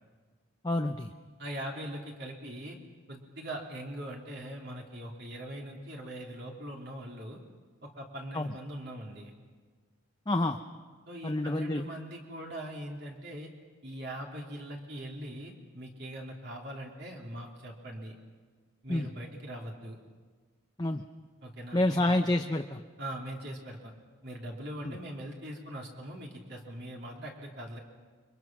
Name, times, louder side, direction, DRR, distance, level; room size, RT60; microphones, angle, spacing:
voice 1, 0.6-1.1 8.3-8.5 10.3-10.6 11.2-11.8 18.9-19.1 20.8-21.0 21.7-22.8 24.8-24.9, left 1 dB, 20° left, 5 dB, 0.6 m, -28 dB
voice 2, 1.4-2.8 3.1-7.4 7.8-9.3 11.1-13.5 13.8-18.1 18.8-20.0 21.4-22.2 23.0-23.9 24.2-27.8, right 1 dB, 50° right, -1 dB, 3.0 m, -41 dB
29.5 x 23.5 x 6.0 m, 1.5 s
head